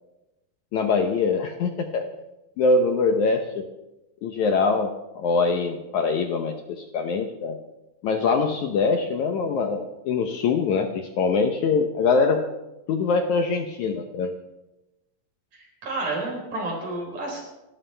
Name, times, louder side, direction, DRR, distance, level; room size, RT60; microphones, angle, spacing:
voice 1, 0.7-2.1 2.6-3.7 4.2-7.6 8.0-12.4 12.9-14.3, left 4 dB, 70° left, 5 dB, 1.9 m, -23 dB
voice 2, 15.5-17.4, right 2 dB, 55° right, -1 dB, 5.7 m, -30 dB
29.0 x 13.0 x 3.4 m, 0.97 s
omnidirectional pair, 4.3 m